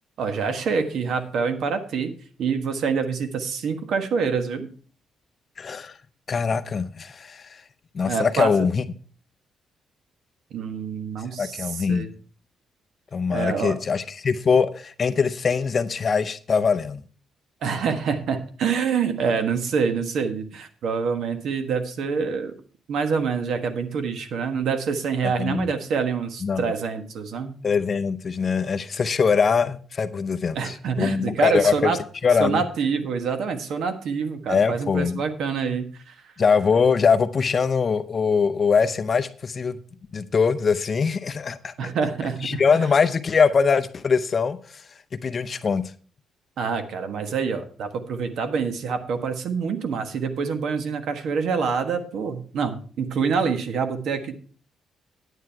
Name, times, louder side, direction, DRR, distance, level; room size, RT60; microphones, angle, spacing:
voice 1, 0.2-4.7 8.1-8.7 10.5-12.1 13.3-13.8 17.6-22.5 22.9-27.6 30.5-32.0 32.4-36.1 41.8-42.6 46.6-54.3, right 5 dB, 65° right, 1.4 m, -26 dB
voice 2, 5.6-5.9 6.3-7.6 7.9-8.8 11.4-12.1 13.1-17.0 25.2-25.7 26.4-26.6 27.6-32.0 32.2-32.6 34.5-35.2 36.4-39.8 40.1-41.7 42.4-44.6 45.2-45.8, left 5 dB, 30° left, 0.6 m, -22 dB
9.6 x 9.1 x 4.6 m
cardioid pair, 170°, 0 cm